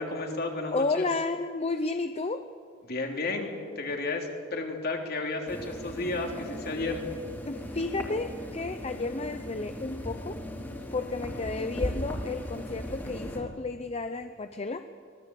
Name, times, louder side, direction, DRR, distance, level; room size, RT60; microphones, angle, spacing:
voice 1, 0.0-1.0 2.9-7.0, left 2 dB, 55° left, 2 dB, 3.4 m, -32 dB
voice 2, 0.7-2.5 7.5-10.4 10.9-15.1, left 3 dB, 30° left, 9 dB, 0.7 m, -32 dB
sound 1, 5.5-13.4, equal, 10° left, 3.4 m, -38 dB
25.0 x 18.0 x 8.4 m, 2.2 s
head